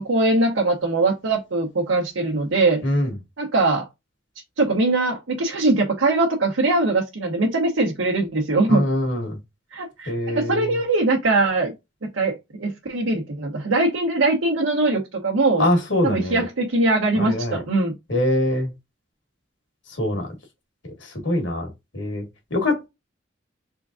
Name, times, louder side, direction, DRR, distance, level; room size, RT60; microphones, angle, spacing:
voice 1, 0.0-2.8 3.4-3.9 4.6-8.8 9.7-11.7 12.0-15.6 16.0-17.9, right 2 dB, 85° right, 1.0 m, -21 dB
voice 2, 2.8-3.1 8.7-9.4 10.0-10.7 15.6-16.4 17.1-17.6 18.1-18.7 20.0-20.3 21.0-22.9, left 1 dB, 70° left, 1.6 m, -24 dB
3.7 x 3.4 x 2.5 m
head